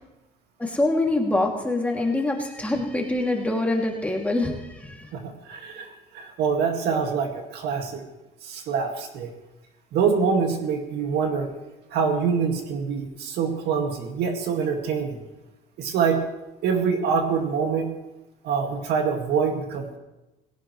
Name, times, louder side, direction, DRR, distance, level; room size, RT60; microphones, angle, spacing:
voice 1, 0.6-5.1, left 2 dB, 10° left, -1 dB, 2.6 m, -25 dB
voice 2, 5.1-8.0 8.4-9.3 9.9-11.5 11.9-15.2 15.8-16.2 16.6-17.9 18.4-20.0, right 6 dB, 80° right, 3 dB, 2.1 m, -25 dB
18.0 x 16.5 x 3.2 m, 1.0 s
cardioid pair, 110°, 17 cm